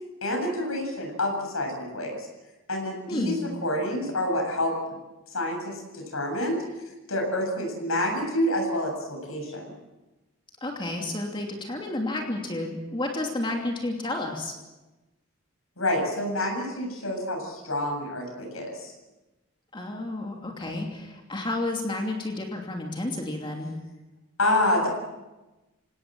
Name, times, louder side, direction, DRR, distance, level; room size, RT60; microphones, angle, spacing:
voice 1, 0.2-2.3 2.7-3.4 3.6-4.7 5.3-6.6 7.1-9.6 15.8-18.9 24.4-24.9, left 1 dB, 75° left, 3 dB, 7.5 m, -28 dB
voice 2, 3.1-3.4 10.6-14.5 19.7-23.7, left 2 dB, 25° left, 1 dB, 2.8 m, -31 dB
27.0 x 18.0 x 7.7 m, 1.1 s
head